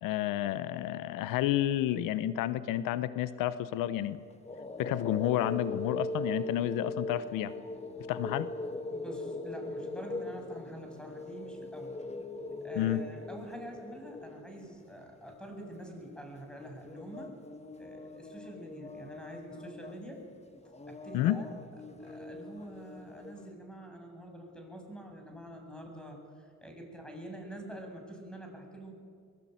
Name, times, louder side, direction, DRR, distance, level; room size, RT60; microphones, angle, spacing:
voice 1, 0.0-4.2 4.8-7.5 8.1-8.5 12.8-13.0 21.1-21.4, left 13 dB, 90° left, 14 dB, 0.9 m, -30 dB
sound 1, 4.1-23.5, left 2 dB, 20° left, 1.9 m, -41 dB
voice 2, 8.9-12.0 12.6-17.4 17.8-20.3 20.9-21.5 22.0-28.9, right 1 dB, 5° left, 3 dB, 7.7 m, -46 dB
22.0 x 21.5 x 9.4 m, 2.1 s
cardioid pair, 85°, 32 cm